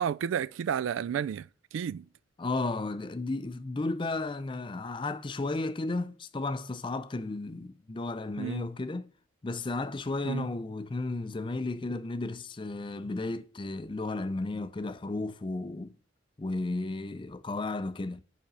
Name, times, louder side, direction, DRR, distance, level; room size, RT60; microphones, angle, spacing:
voice 1, 0.0-1.5 1.7-2.1 8.4-8.7 10.2-10.5, right 8 dB, 80° right, 0.3 m, -31 dB
voice 2, 2.4-9.1 9.4-15.9 16.4-18.2, left 2 dB, 25° left, 0.4 m, -33 dB
5.5 x 5.0 x 5.3 m
head